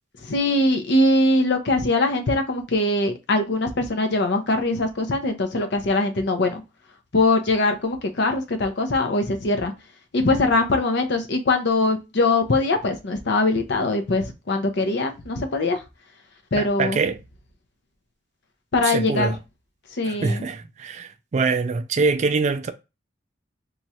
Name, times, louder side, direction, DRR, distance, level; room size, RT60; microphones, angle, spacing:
voice 1, 0.2-6.6 7.1-9.7 10.1-15.8 16.5-17.0 18.7-19.4 20.0-20.4, left 2 dB, 65° left, 0.7 m, -22 dB
voice 2, 16.6-17.2 18.8-19.4 20.0-22.7, right 4 dB, 40° right, 0.3 m, -24 dB
3.0 x 2.4 x 4.1 m
head